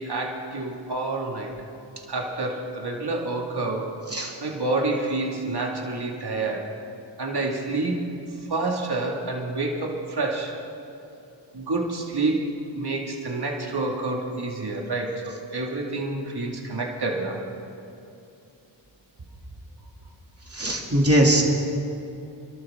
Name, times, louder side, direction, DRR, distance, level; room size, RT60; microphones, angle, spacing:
voice 1, 0.0-1.5 2.1-3.9 4.4-6.7 7.2-8.2 8.5-10.5 11.5-17.4, right 2 dB, 55° right, -1 dB, 2.5 m, -28 dB
voice 2, 20.6-21.4, right 1 dB, 30° right, -1 dB, 2.9 m, -20 dB
28.0 x 12.5 x 3.8 m, 2.7 s
cardioid pair, 50°, 46 cm